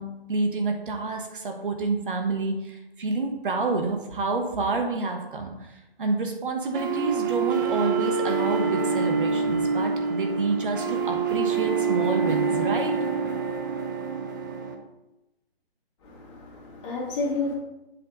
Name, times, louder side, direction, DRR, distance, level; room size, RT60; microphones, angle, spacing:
voice 1, 0.0-5.5 6.0-12.9, right 3 dB, 55° right, 3 dB, 1.4 m, -28 dB
sound 1, 6.7-14.7, right 5 dB, 20° right, 0.5 m, -26 dB
voice 2, 16.0-17.6, left 3 dB, 30° left, -3 dB, 2.1 m, -30 dB
7.8 x 6.0 x 3.9 m, 0.98 s
figure-of-eight pair, 140°, 32 cm